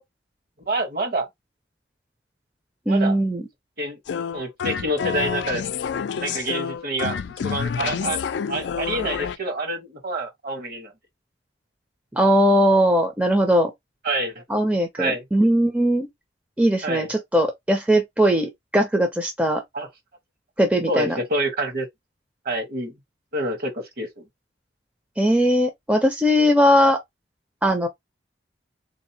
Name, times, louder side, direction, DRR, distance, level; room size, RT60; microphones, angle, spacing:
voice 1, 0.7-1.3 2.9-3.2 3.8-4.0 4.3-5.7 6.2-8.2 8.5-10.9 14.0-14.4 15.0-15.2 16.8-17.1 18.3-18.4 19.7-19.9 20.9-21.9 22.4-22.9 23.3-24.1, right 1 dB, 55° right, 1.2 m, -27 dB
voice 2, 2.9-3.4 12.1-13.7 14.5-16.1 16.6-19.6 20.6-21.2 25.2-27.0 27.6-27.9, equal, 5° right, 0.6 m, -19 dB
sound 1, 4.1-9.4, left 7 dB, 70° left, 0.3 m, -28 dB
3.8 x 2.8 x 2.7 m
head